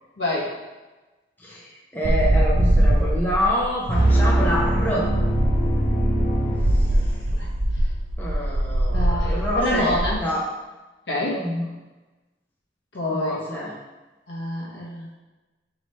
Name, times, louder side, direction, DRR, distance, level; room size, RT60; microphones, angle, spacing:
voice 1, 0.2-0.5 6.8-7.0 7.3-7.5 8.9-10.2 11.1-11.5 12.9-13.4 14.3-15.1, left 1 dB, 70° left, -4 dB, 1.0 m, -27 dB
voice 2, 1.4-5.1 6.7-6.9 8.2-10.4 11.4-11.7 13.1-13.7, equal, 10° left, -5 dB, 0.6 m, -27 dB
sound 1, 2.0-10.2, right 1 dB, 35° right, 0.4 m, -22 dB
sound 2, 3.9-7.3, right 1 dB, 45° left, 1.2 m, -22 dB
3.1 x 3.1 x 4.2 m, 1.1 s
head